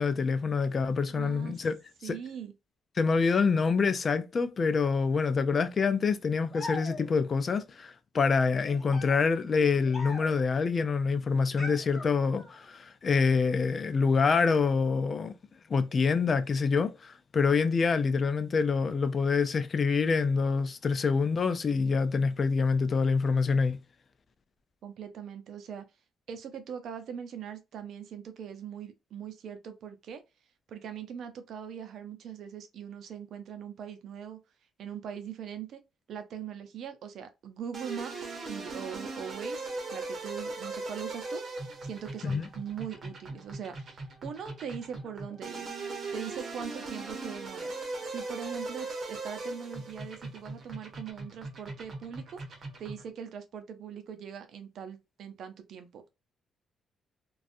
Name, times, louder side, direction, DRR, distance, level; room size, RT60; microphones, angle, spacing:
voice 1, 0.0-1.7 2.0-2.2 3.0-15.3 15.7-23.8 42.2-42.4, left 5 dB, 40° left, 0.4 m, -26 dB
voice 2, 1.1-1.6 2.0-2.5 24.8-25.8 26.3-30.2 30.7-34.4 34.8-35.8 36.1-45.7 46.1-47.8 48.1-56.1, right 8 dB, 70° right, 0.5 m, -41 dB
sound 1, 6.5-7.4 8.5-10.5 11.6-12.7, left 2 dB, 25° left, 1.0 m, -42 dB
sound 2, 37.7-53.1, right 3 dB, 50° right, 0.9 m, -39 dB
2.5 x 2.3 x 2.5 m
cardioid pair, 90°, 0 cm